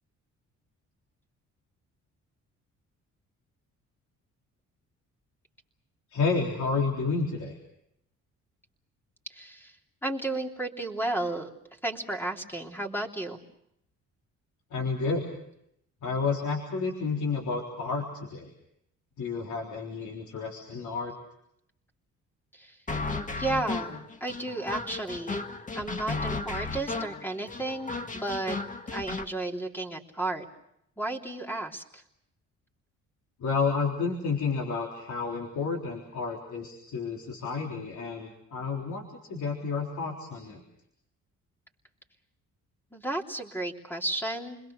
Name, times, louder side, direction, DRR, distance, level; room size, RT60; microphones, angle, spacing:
voice 1, 6.1-7.6 14.7-15.2 16.0-18.5 19.2-21.1 33.4-40.6, left 4 dB, 70° left, 0 dB, 3.8 m, -30 dB
voice 2, 9.3-9.8 10.0-11.5 11.8-13.4 22.5-22.8 23.4-25.4 25.7-28.6 28.9-30.4 31.0-32.0 42.9-44.6, right 2 dB, 5° left, 2 dB, 3.2 m, -33 dB
sound 1, 22.9-29.3, left 3 dB, 25° left, 1.8 m, -34 dB
29.5 x 21.5 x 6.6 m, 0.76 s
cardioid pair, 90°, 30 cm